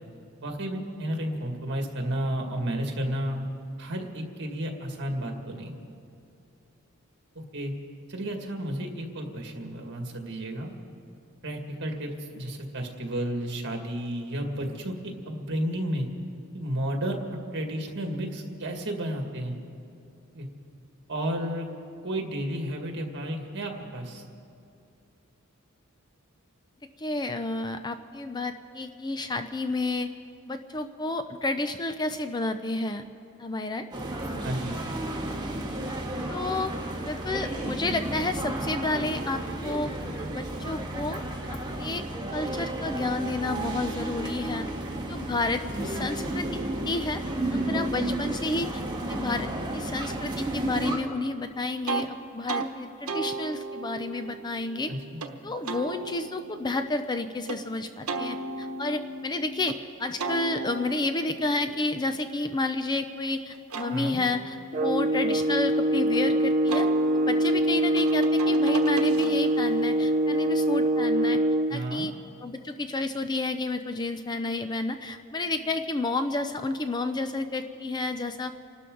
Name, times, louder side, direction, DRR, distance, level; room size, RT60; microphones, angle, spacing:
voice 1, 0.4-3.5 3.8-5.8 7.4-7.7 8.1-10.7 11.4-16.1 16.5-19.5 20.3-20.5 21.1-21.7 22.0-24.2 34.4-34.8 54.9-55.2 63.9-64.2 71.7-72.1, right 1 dB, 55° right, 2 dB, 2.1 m, -32 dB
voice 2, 27.0-30.1 30.5-33.0 33.4-33.9 36.3-36.7 37.0-39.9 40.3-41.2 41.5-42.0 42.3-44.7 45.1-46.6 46.9-47.2 47.5-48.8 49.1-54.9 55.4-66.9 67.3-71.4 71.7-72.1 72.4-78.5, left 2 dB, 20° left, 8 dB, 0.5 m, -30 dB
sound 1, 33.9-51.0, right 1 dB, 20° right, 1.8 m, -32 dB
sound 2, 51.9-52.1 52.5-52.7 53.1-55.3 55.6-57.6 58.1-59.8 60.2-63.1 63.5-66.2 66.7-69.7, right 3 dB, 80° right, 1.1 m, -36 dB
sound 3, 64.7-71.8, right 1 dB, 35° right, 0.7 m, -24 dB
29.0 x 12.5 x 3.9 m, 2.6 s
head